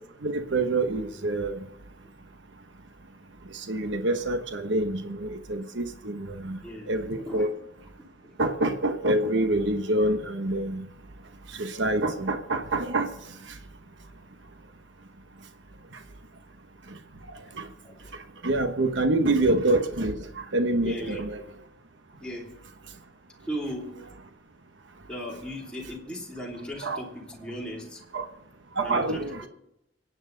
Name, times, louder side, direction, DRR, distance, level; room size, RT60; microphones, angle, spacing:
voice 1, 0.2-1.6 3.5-6.6 6.9-7.5 8.4-10.9 11.5-13.1 13.5-13.6 17.6-17.7 18.4-21.4 26.8-27.0 28.1-28.2 28.8-29.4, right 2 dB, 75° right, 7 dB, 1.1 m, -26 dB
voice 2, 7.1-7.5 8.0-8.3 17.8-18.1 20.8-21.2 22.2-22.5 23.4-23.9 25.1-28.0 28.8-29.5, equal, 5° left, -4 dB, 2.8 m, -37 dB
24.5 x 8.9 x 3.9 m, 0.82 s
head